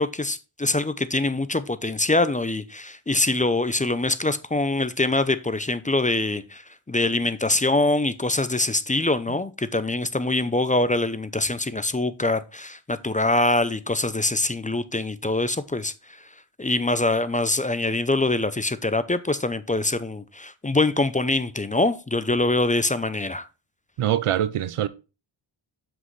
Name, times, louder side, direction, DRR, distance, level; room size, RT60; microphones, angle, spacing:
voice 1, 0.0-15.9 16.6-23.5, left 2 dB, 15° left, 0.5 m, -24 dB
voice 2, 24.0-24.9, right 11 dB, 90° right, 0.7 m, -23 dB
7.3 x 6.2 x 3.2 m
wide cardioid pair, 85°, 49 cm